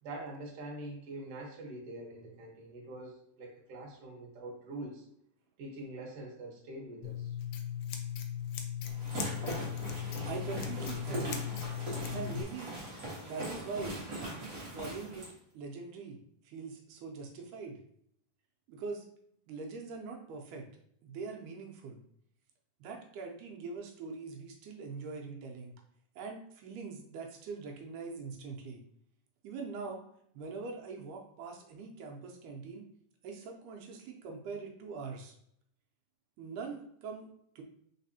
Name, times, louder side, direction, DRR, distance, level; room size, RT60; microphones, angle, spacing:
voice 1, 0.0-5.1 5.6-7.4, right 1 dB, 60° right, -1 dB, 1.9 m, -44 dB
Scissors, 7.0-12.4, left 9 dB, 80° left, 1.6 m, -38 dB
sound 1, 8.8-15.3, right 1 dB, 40° right, 1.3 m, -40 dB
voice 2, 10.3-11.5 12.1-12.7 13.2-14.0 14.7-16.2 16.4-17.8 18.7-19.1 19.5-20.7 21.0-22.0 22.8-25.7 26.2-28.8 29.4-30.0 30.3-32.8 33.2-35.4 36.4-37.3 37.6-37.7, right 4 dB, 85° right, 1 dB, 2.2 m, -42 dB
4.3 x 4.0 x 2.7 m, 0.69 s
omnidirectional pair, 3.6 m